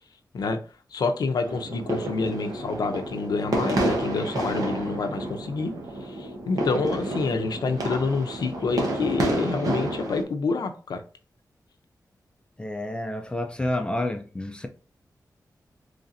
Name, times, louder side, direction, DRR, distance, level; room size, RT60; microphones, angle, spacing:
voice 1, 0.9-5.7 6.0-11.0, left 4 dB, 85° left, 0.5 m, -27 dB
sound 1, 1.4-10.2, right 1 dB, 65° right, 1.0 m, -30 dB
voice 2, 12.6-14.7, left 1 dB, 15° left, 0.4 m, -29 dB
4.0 x 3.2 x 2.5 m
wide cardioid pair, 160°, 7 cm